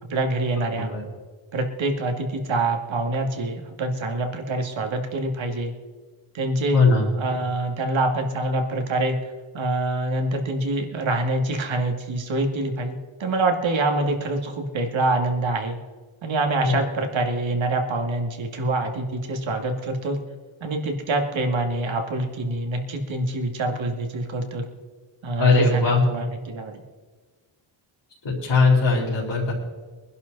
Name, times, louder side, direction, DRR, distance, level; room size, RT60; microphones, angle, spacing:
voice 1, 0.1-0.9 1.5-5.7 6.3-6.8 7.2-9.2 9.5-15.8 16.2-20.2 20.6-24.6 25.2-26.8, right 2 dB, 70° right, 3 dB, 2.3 m, -25 dB
voice 2, 6.7-7.1 16.6-16.8 25.4-26.1 28.2-29.5, left 3 dB, 60° left, -4 dB, 4.0 m, -19 dB
23.0 x 11.0 x 4.1 m, 1.4 s
wide cardioid pair, 130°, 48 cm